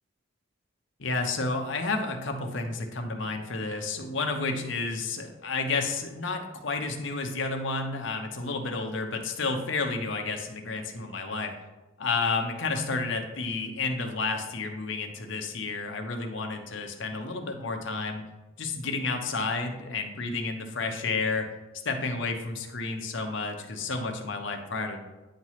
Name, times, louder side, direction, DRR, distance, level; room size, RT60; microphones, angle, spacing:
voice 1, 1.0-11.5 12.0-18.2 18.6-21.5 21.8-25.0, left 3 dB, 60° left, 4 dB, 0.9 m, -31 dB
9.3 x 3.1 x 5.7 m, 1.1 s
head